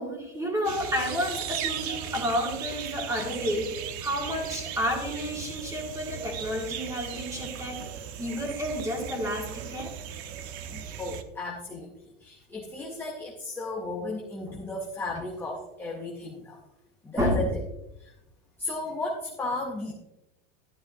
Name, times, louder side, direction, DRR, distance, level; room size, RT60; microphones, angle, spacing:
voice 1, 0.0-3.7 4.0-7.9 8.2-9.9 17.2-17.4, equal, 10° right, 0 dB, 1.9 m, -30 dB
sound 1, 0.6-11.2, right 9 dB, 60° right, 0.9 m, -37 dB
voice 2, 10.7-11.9 12.2-16.6 17.0-17.5 18.0-18.1 18.6-19.9, left 2 dB, 5° left, -1 dB, 0.5 m, -34 dB
12.0 x 9.5 x 2.6 m, 0.89 s
supercardioid pair, 175°, 36 cm